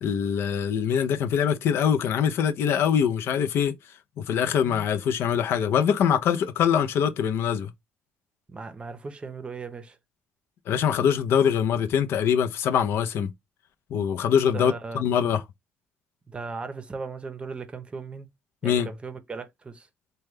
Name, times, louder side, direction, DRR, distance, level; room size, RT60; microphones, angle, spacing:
voice 1, 0.0-3.7 4.2-7.7 10.7-13.3 13.9-15.4 18.6-18.9, left 8 dB, 70° left, 0.5 m, -23 dB
voice 2, 4.5-4.9 8.5-10.0 14.5-15.0 16.3-18.3 18.6-19.9, right 4 dB, 25° right, 0.7 m, -37 dB
3.0 x 2.2 x 3.4 m
cardioid pair, 100°, 4 cm